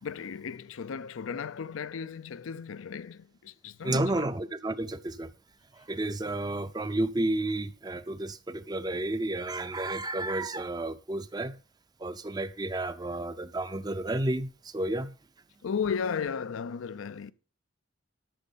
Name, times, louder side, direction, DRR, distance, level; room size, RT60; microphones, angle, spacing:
voice 1, 0.0-4.3 15.6-17.3, left 6 dB, 80° left, 0.5 m, -35 dB
voice 2, 3.8-5.3 5.8-11.6 12.0-15.1, right 2 dB, 20° right, 0.5 m, -31 dB
12.0 x 6.3 x 5.4 m
head